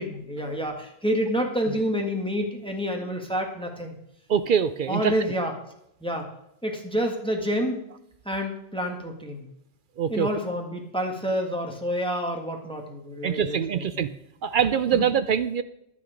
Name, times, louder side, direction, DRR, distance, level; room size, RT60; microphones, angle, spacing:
voice 1, 0.0-3.9 4.9-5.5 6.0-6.3 6.6-7.8 8.2-9.5 10.1-14.0 14.9-15.0, equal, 5° left, 2 dB, 1.6 m, -28 dB
voice 2, 4.3-5.1 10.0-10.3 13.2-14.1 14.4-15.6, right 8 dB, 60° right, 12 dB, 0.5 m, -24 dB
11.0 x 9.2 x 5.0 m, 0.78 s
omnidirectional pair, 1.3 m